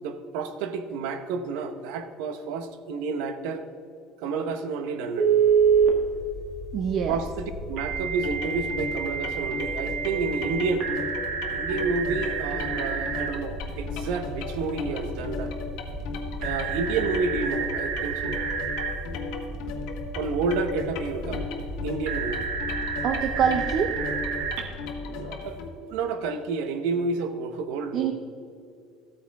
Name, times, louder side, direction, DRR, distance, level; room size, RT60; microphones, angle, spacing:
voice 1, 0.0-3.6 4.2-5.3 7.1-10.9 11.5-15.6 16.4-18.4 20.1-21.5 21.8-22.5 25.0-25.6 25.9-28.1, right 4 dB, 80° right, 9 dB, 0.9 m, -30 dB
Telephone, 5.2-5.9 7.8-13.3 16.4-18.9 22.1-24.6, right 7 dB, 60° right, 1.4 m, -27 dB
sound 1, 5.5-24.7, equal, 10° right, 1.2 m, -38 dB
voice 2, 6.7-7.2 23.0-23.9 27.9-28.1, right 7 dB, 45° right, 5 dB, 0.6 m, -25 dB
sound 2, 8.2-25.7, left 4 dB, 70° left, 1.3 m, -36 dB
14.0 x 8.6 x 3.6 m, 2.4 s
cardioid pair, 160°, 0 cm